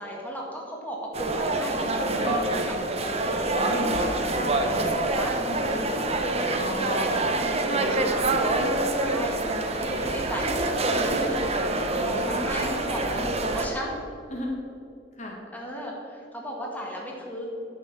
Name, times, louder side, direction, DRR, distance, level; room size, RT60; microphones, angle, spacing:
voice 1, 0.0-3.6 4.7-5.3 5.7-6.0 6.8-7.1 7.9-8.3 8.9-11.5 11.9-14.0 15.5-17.4, equal, 10° left, -3 dB, 1.9 m, -36 dB
sound 1, 1.1-13.7, right 2 dB, 35° right, 0.9 m, -26 dB
voice 2, 1.8-2.7 3.5-5.0 5.4-5.9 6.4-8.7 11.9-12.7 13.1-13.6 14.3-14.6 15.2-15.4, left 1 dB, 40° left, -1 dB, 1.7 m, -35 dB
10.5 x 6.5 x 7.3 m, 2.6 s
head